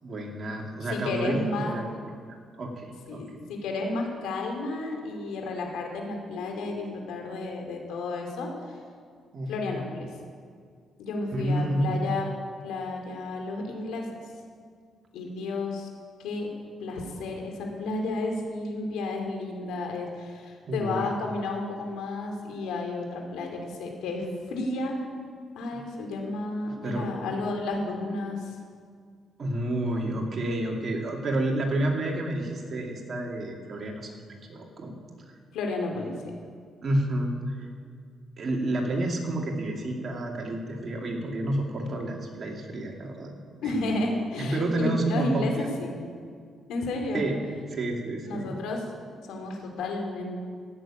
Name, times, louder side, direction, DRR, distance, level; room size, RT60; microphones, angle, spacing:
voice 1, 0.0-1.9 2.6-3.2 9.3-9.8 11.3-12.1 20.7-21.1 26.8-27.1 29.4-34.9 35.3-35.4 35.9-36.0 36.8-37.6 38.4-43.3 43.6-43.9 44.4-45.7 47.1-47.4 47.7-48.6, right 1 dB, 45° right, 0 dB, 2.5 m, -30 dB
voice 2, 0.9-1.9 3.1-8.5 9.5-10.1 11.0-12.3 12.6-14.1 15.1-15.9 16.2-16.5 16.8-24.9 25.5-28.5 35.5-36.1 43.6-46.0 46.7-47.2 48.2-48.8 49.3-50.4, left 2 dB, 85° left, 2 dB, 2.6 m, -32 dB
16.0 x 6.8 x 8.9 m, 2.1 s
cardioid pair, 90°, 0 cm